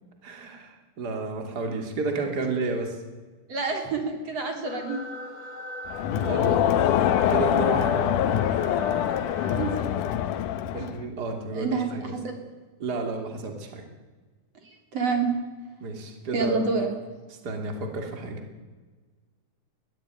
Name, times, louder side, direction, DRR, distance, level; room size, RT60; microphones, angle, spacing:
voice 1, 0.2-3.0 6.2-8.2 10.7-12.2 12.8-13.8 15.8-16.6 17.4-18.4, right 3 dB, 30° right, 4 dB, 3.0 m, -32 dB
voice 2, 3.5-5.0 6.4-6.6 9.6-9.9 10.8-10.9 11.5-12.4 14.6-15.3 16.3-16.9, right 4 dB, 45° right, 4 dB, 4.2 m, -28 dB
sound 1, 4.6-9.8, left 2 dB, 20° left, 1.4 m, -39 dB
Crowd, 5.9-11.1, left 10 dB, 70° left, 2.4 m, -24 dB
21.5 x 17.0 x 9.2 m, 1.4 s
omnidirectional pair, 4.0 m